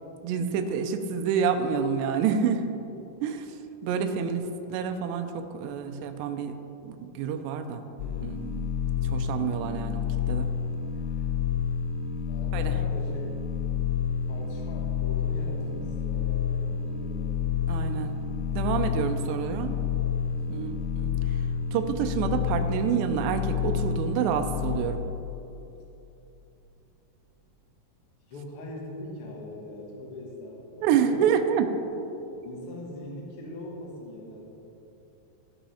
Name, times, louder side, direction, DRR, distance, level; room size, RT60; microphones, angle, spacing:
voice 1, 0.2-2.6 3.2-3.6 3.8-4.4 4.7-6.5 6.8-7.8 8.2-8.6 9.0-10.5 12.5-12.7 17.7-18.2 18.5-19.8 20.5-21.4 21.7-25.0 30.8-31.7, right 7 dB, 85° right, 6 dB, 2.8 m, -28 dB
sound 1, 8.0-24.8, left 7 dB, 80° left, 2.6 m, -29 dB
voice 2, 12.2-13.2 14.3-17.3 20.4-20.8 28.3-31.4 32.4-34.5, left 1 dB, 65° left, -2 dB, 1.4 m, -41 dB
15.0 x 5.5 x 4.2 m, 2.9 s
omnidirectional pair, 4.9 m